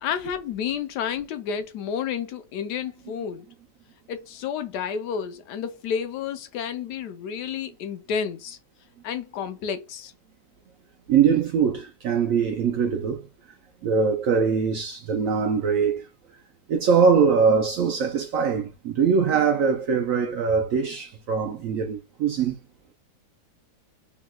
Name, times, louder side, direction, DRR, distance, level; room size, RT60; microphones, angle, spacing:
voice 1, 0.0-3.5 4.1-8.6 9.0-10.1, left 7 dB, 80° left, 1.1 m, -30 dB
voice 2, 11.1-13.2 13.8-16.0 16.7-22.5, right 6 dB, 70° right, 0.8 m, -22 dB
3.4 x 2.9 x 2.2 m
omnidirectional pair, 1.8 m